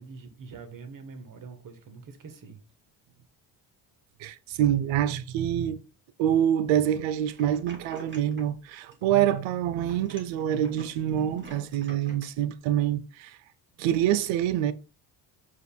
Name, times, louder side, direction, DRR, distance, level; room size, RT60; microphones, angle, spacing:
voice 1, 0.0-2.6, right 4 dB, 40° right, 1.1 m, -44 dB
voice 2, 4.2-5.8 6.2-13.4 13.8-14.7, right 11 dB, 70° right, 0.6 m, -26 dB
sound 1, 7.3-8.6 8.9-9.5 9.8-12.3, right 2 dB, 20° right, 1.7 m, -48 dB
4.8 x 2.5 x 3.3 m
hypercardioid pair, 60°, 49 cm